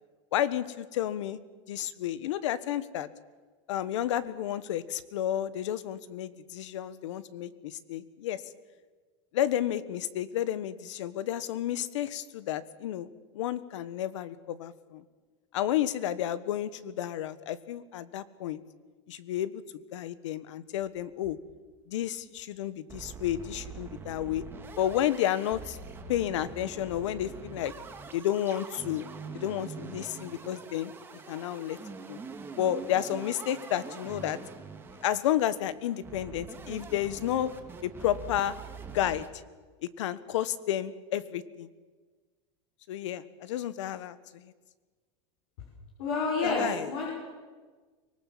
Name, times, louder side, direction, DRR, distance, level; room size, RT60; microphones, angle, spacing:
voice 1, 0.3-1.4 1.7-3.1 3.7-8.4 9.3-13.1 13.3-15.0 15.5-18.6 19.1-19.6 19.9-21.4 21.9-24.4 24.8-25.8 26.1-27.7 28.1-29.1 29.3-30.9 31.3-31.8 32.1-32.2 32.6-34.4 35.0-37.5 37.8-38.5 38.9-39.2 40.0-41.7 42.9-44.5 46.4-46.9, left 11 dB, 85° left, 16 dB, 1.3 m, -31 dB
sound 1, 20.8-21.7 22.0-22.1 22.4-22.5 22.9-39.3, right 5 dB, 15° right, 1.9 m, -44 dB
voice 2, 46.0-47.2, left 3 dB, 70° left, -3 dB, 6.3 m, -29 dB
24.5 x 19.5 x 7.5 m, 1.4 s
supercardioid pair, 145°, 15 cm